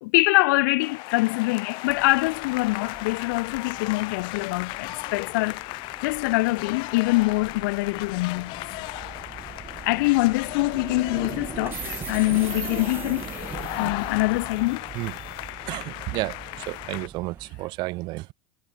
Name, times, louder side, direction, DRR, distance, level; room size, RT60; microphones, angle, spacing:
voice 1, 0.0-8.5 9.8-11.8 12.1-13.5 13.8-14.8, left 23 dB, 65° left, 1.4 m, -24 dB
sound 1, 0.8-17.1, left 25 dB, 45° left, 3.2 m, -36 dB
sound 2, 1.9-17.5, right 7 dB, 20° right, 5.7 m, -41 dB
voice 2, 15.7-18.3, right 21 dB, 45° right, 3.7 m, -32 dB
supercardioid pair, 155°, 11 cm